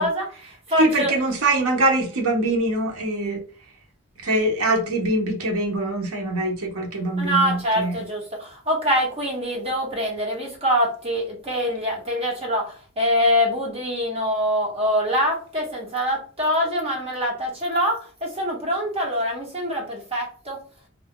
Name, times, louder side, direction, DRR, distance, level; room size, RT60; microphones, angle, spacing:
voice 1, 0.0-1.2 7.2-20.6, equal, 25° right, 1.1 m, -24 dB
voice 2, 0.8-3.4 4.2-7.9, right 2 dB, 85° right, 0.9 m, -23 dB
2.5 x 2.2 x 3.7 m
head